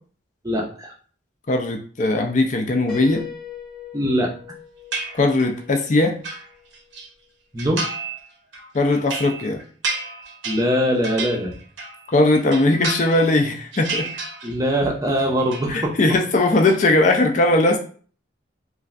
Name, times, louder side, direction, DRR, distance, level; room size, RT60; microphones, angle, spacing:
voice 1, 0.4-0.9 3.9-4.3 7.5-7.8 10.4-11.5 14.4-15.9, equal, 15° right, -1 dB, 0.5 m, -22 dB
voice 2, 1.5-3.2 5.2-6.2 8.7-9.6 12.1-14.1 15.7-17.8, left 2 dB, 40° left, 3 dB, 0.4 m, -19 dB
Piano, 2.9-6.6, left 7 dB, ahead, 0.9 m, -39 dB
sound 1, 4.9-5.6 6.0-7.1 7.6-8.2 8.5-12.0 12.4-13.4 13.7-14.8 15.1-15.7, right 3 dB, 65° right, 0.7 m, -31 dB
3.0 x 2.5 x 2.4 m, 0.42 s
head